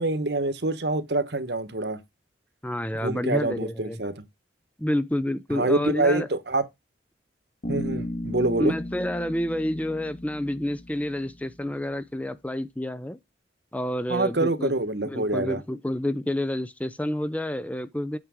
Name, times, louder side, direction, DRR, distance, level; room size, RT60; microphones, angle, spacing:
voice 1, 0.0-2.0 3.0-4.2 5.5-6.6 7.7-8.7 14.1-15.6, right 2 dB, 60° right, 1.2 m, -26 dB
voice 2, 2.6-4.0 4.8-6.3 8.6-13.2 13.7-14.7 15.0-18.2, left 1 dB, 5° left, 0.5 m, -29 dB
Bass guitar, 7.6-11.5, left 1 dB, 50° left, 2.3 m, -35 dB
8.8 x 6.0 x 3.7 m
head